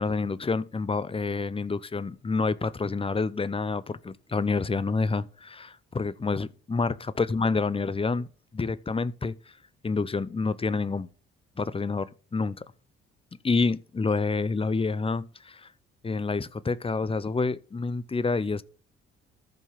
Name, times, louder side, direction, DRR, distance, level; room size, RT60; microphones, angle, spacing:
voice 1, 0.0-8.3 8.5-9.4 9.8-11.1 11.6-12.6 13.4-15.7 16.0-18.6, left 4 dB, 20° left, 0.7 m, -28 dB
14.5 x 5.5 x 3.8 m
hypercardioid pair, 50°, 30 cm